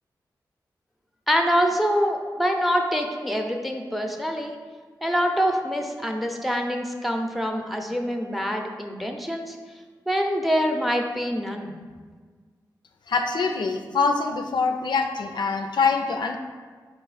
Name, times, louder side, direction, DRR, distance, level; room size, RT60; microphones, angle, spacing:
voice 1, 1.3-4.5 5.0-9.6 10.1-11.7, equal, ahead, 3 dB, 0.6 m, -25 dB
voice 2, 13.1-16.4, left 4 dB, 70° left, 5 dB, 0.3 m, -24 dB
4.1 x 2.7 x 4.0 m, 1.5 s
cardioid pair, 45°, 8 cm